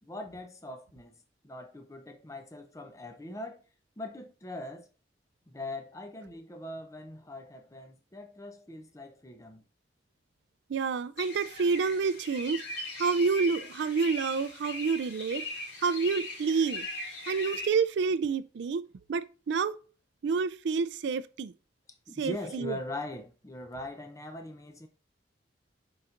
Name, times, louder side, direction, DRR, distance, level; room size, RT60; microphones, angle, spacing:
voice 1, 0.0-3.6 4.0-4.9 5.5-9.6 22.1-24.9, left 1 dB, 15° left, 0.6 m, -41 dB
voice 2, 10.7-12.6 13.0-15.5 15.8-16.9 17.3-18.8 19.1-19.8 20.2-21.5 22.2-22.7, right 5 dB, 70° right, 0.3 m, -28 dB
sound 1, 11.2-17.7, left 2 dB, 65° left, 2.3 m, -39 dB
10.0 x 4.0 x 2.5 m
head